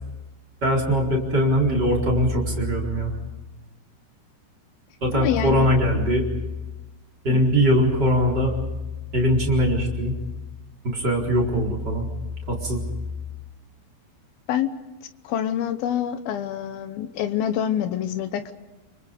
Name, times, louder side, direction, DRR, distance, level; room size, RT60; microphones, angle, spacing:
voice 1, 0.6-3.1 5.0-6.2 7.2-8.5 9.1-10.1 10.9-12.1 12.5-12.8, equal, 25° right, -1 dB, 4.4 m, -21 dB
voice 2, 5.1-5.7 7.3-7.5 14.5-14.7 15.2-18.5, left 10 dB, 70° left, 10 dB, 2.5 m, -26 dB
29.0 x 25.0 x 5.3 m, 1.1 s
omnidirectional pair, 5.2 m